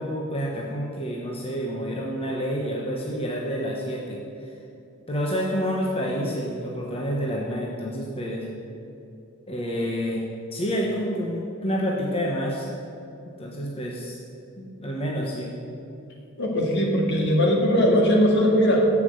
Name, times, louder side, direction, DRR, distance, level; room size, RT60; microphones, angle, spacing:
voice 1, 0.0-4.5 5.1-8.5 9.5-10.2 10.5-12.7 13.4-14.2 14.6-15.5, equal, 30° left, -2 dB, 1.3 m, -28 dB
voice 2, 16.4-18.9, equal, 55° left, 0 dB, 2.2 m, -20 dB
14.0 x 6.0 x 8.0 m, 2.7 s
head